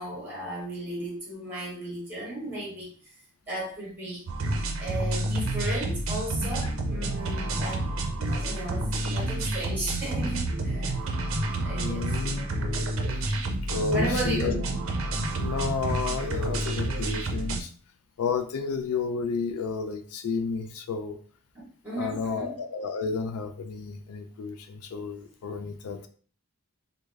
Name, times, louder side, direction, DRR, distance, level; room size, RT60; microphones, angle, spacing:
voice 1, 0.0-3.1 3.5-4.2 4.8-11.0 11.6-12.5 13.9-14.5 21.5-22.6, right 1 dB, 10° right, -4 dB, 1.2 m, -35 dB
sound 1, 4.3-17.6, right 2 dB, 65° right, 0.5 m, -29 dB
voice 2, 11.7-14.6 15.3-17.7 18.2-21.2 22.0-26.1, left 5 dB, 85° left, 7 dB, 0.4 m, -32 dB
3.4 x 2.0 x 3.3 m, 0.43 s
head